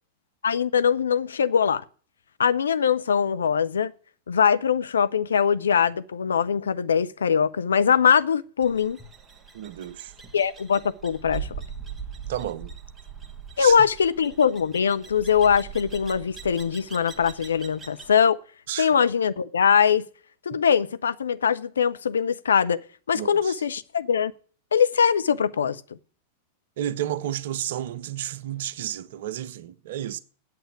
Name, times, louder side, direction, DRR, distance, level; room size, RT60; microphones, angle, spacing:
voice 1, 0.4-1.8 2.4-3.9 4.3-9.0 10.3-11.5 13.6-18.4 18.8-20.1 20.5-22.8 23.1-24.3 24.7-25.8, left 7 dB, 70° left, 0.5 m, -22 dB
sound 1, 8.6-18.1, right 6 dB, 15° right, 1.5 m, -41 dB
voice 2, 9.5-10.1 12.3-12.7 13.6-13.9 18.7-18.9 20.5-20.6 23.1-23.6 26.8-30.2, right 11 dB, 55° right, 0.7 m, -32 dB
8.4 x 7.9 x 9.0 m
figure-of-eight pair, 90°, 0 cm